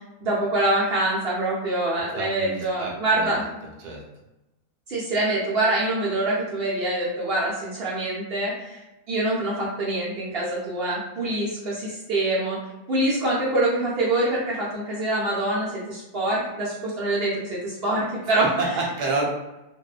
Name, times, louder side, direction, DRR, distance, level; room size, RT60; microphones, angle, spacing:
voice 1, 0.2-3.5 4.9-12.6 12.9-18.5, right 2 dB, 55° right, -7 dB, 0.7 m, -25 dB
voice 2, 2.1-3.4 3.8-4.0 18.6-19.2, right 3 dB, 80° right, -1 dB, 1.2 m, -29 dB
2.7 x 2.1 x 2.4 m, 1.0 s
omnidirectional pair, 1.8 m